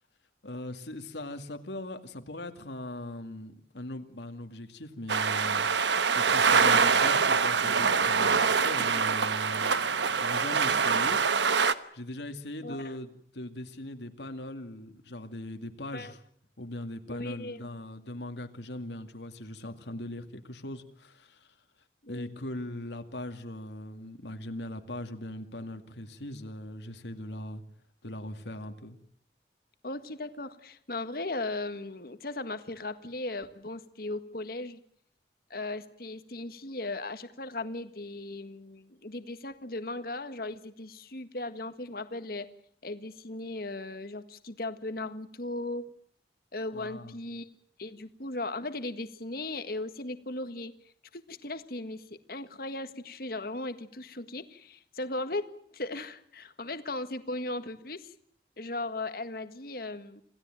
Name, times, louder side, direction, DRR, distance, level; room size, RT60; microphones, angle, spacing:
voice 1, 0.4-11.6 11.9-16.2 16.6-21.5 22.1-27.6 28.0-29.0 46.7-47.2, left 1 dB, 75° left, 6 dB, 2.4 m, -40 dB
sound 1, 5.1-11.7, right 5 dB, 80° right, 1.1 m, -24 dB
voice 2, 6.8-7.1 12.6-13.0 15.9-16.1 17.1-17.7 22.0-22.3 29.8-34.8 35.5-42.5 42.8-45.8 46.5-47.5 47.8-50.7 51.1-55.4 55.7-58.1 58.6-60.2, left 2 dB, 55° left, 10 dB, 1.7 m, -37 dB
27.5 x 16.5 x 9.2 m, 0.64 s
head